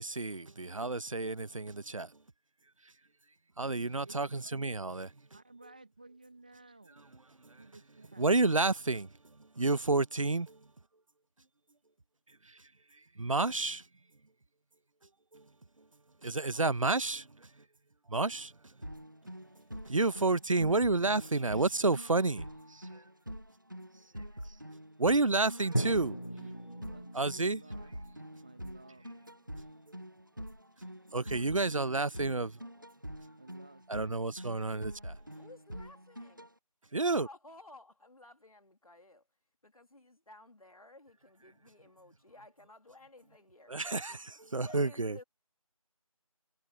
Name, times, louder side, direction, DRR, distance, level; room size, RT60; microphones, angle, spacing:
voice 1, 0.0-2.1 3.6-5.1 8.2-9.1 9.6-10.6 13.2-13.8 15.3-15.4 16.2-17.3 18.1-18.5 19.9-22.4 25.0-26.2 27.1-27.6 31.1-32.5 33.9-35.1 36.9-37.3 43.7-45.2, right 3 dB, 60° right, 0.8 m, -30 dB
voice 2, 4.0-4.9 5.3-7.0 7.6-8.3 26.7-27.9 28.4-29.1 33.4-34.2 36.4-36.5, right 2 dB, 15° right, 1.4 m, -56 dB
sound 1, 18.8-36.5, equal, 35° right, 0.5 m, -46 dB
Drum, 25.7-29.7, right 1 dB, 35° left, 0.4 m, -39 dB
voice 3, 35.3-36.5 37.2-39.2 39.6-43.8 44.3-45.2, left 2 dB, 70° left, 2.6 m, -55 dB
figure-of-eight pair, 175°, 19 cm